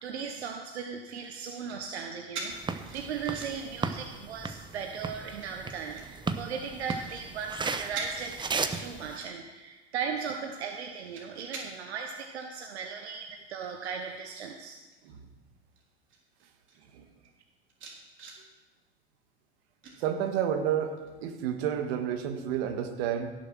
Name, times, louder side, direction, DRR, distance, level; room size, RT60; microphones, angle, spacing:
voice 1, 0.0-14.8, right 6 dB, 80° right, 4 dB, 1.2 m, -37 dB
sound 1, 1.2-2.0 2.3-3.7 4.1-4.6 5.2-6.0 6.6-7.2 7.5-7.7 7.9-8.1 8.5-9.6 10.0-11.9 12.4-12.5 12.9-14.4 14.7-15.1 15.8-15.9 16.1-16.8 17.2-17.3 17.7-18.4 19.8-20.5 21.0-21.1, right 4 dB, 35° right, 3.5 m, -45 dB
sound 2, 2.5-9.2, right 4 dB, 15° right, 0.8 m, -36 dB
voice 2, 20.0-23.3, right 9 dB, 65° right, 7 dB, 1.8 m, -30 dB
16.5 x 7.5 x 6.3 m, 1.2 s
hypercardioid pair, 100°, 32 cm